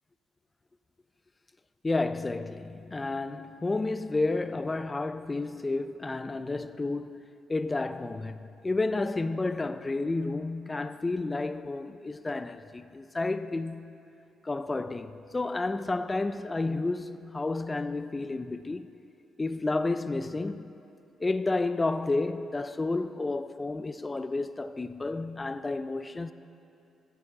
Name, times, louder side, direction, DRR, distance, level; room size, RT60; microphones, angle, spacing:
voice 1, 1.8-13.9 14.4-18.9 19.4-20.7 21.2-26.3, left 3 dB, 20° left, 0.4 m, -31 dB
14.0 x 9.5 x 3.8 m
cardioid pair, 90°, 0 cm